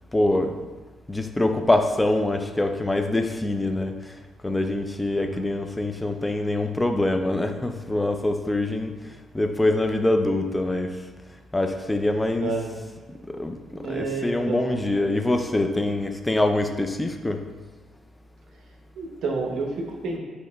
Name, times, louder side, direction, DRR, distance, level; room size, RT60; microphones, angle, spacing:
voice 1, 0.1-0.6 1.1-4.1 4.4-8.9 9.3-11.0 11.5-12.5 13.3-17.4, left 1 dB, 15° left, 6 dB, 0.4 m, -24 dB
voice 2, 5.2-5.5 12.4-12.8 13.8-14.8 18.9-20.2, right 3 dB, 65° right, 0 dB, 0.8 m, -30 dB
5.3 x 2.8 x 3.4 m, 1.3 s
cardioid pair, 90°, 0 cm